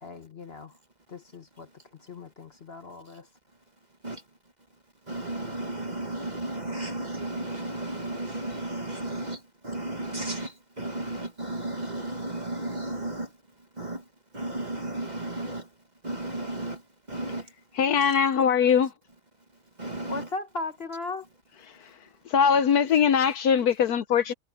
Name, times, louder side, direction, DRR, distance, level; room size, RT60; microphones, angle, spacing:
voice 1, 0.0-0.8 1.1-3.2 20.1-21.3, left 3 dB, 40° left, 1.2 m, -37 dB
voice 2, 5.1-13.4 13.7-14.1 14.3-15.7 16.0-17.5 19.8-20.3 23.2-23.3, right 2 dB, 25° right, 1.5 m, -34 dB
voice 3, 17.8-18.9 22.3-24.3, left 7 dB, 65° left, 1.2 m, -21 dB
omnidirectional pair, 1.8 m